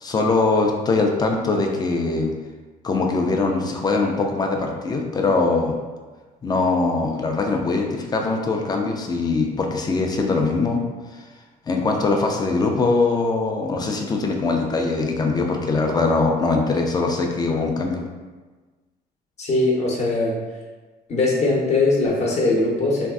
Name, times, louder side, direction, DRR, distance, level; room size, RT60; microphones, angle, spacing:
voice 1, 0.0-2.3 2.8-5.7 6.4-10.8 11.7-18.0, left 3 dB, 25° left, 2 dB, 0.4 m, -22 dB
voice 2, 19.4-20.4 21.1-23.1, left 2 dB, 40° left, -2 dB, 0.8 m, -20 dB
3.0 x 2.5 x 2.3 m, 1.3 s
cardioid pair, 110°, 17 cm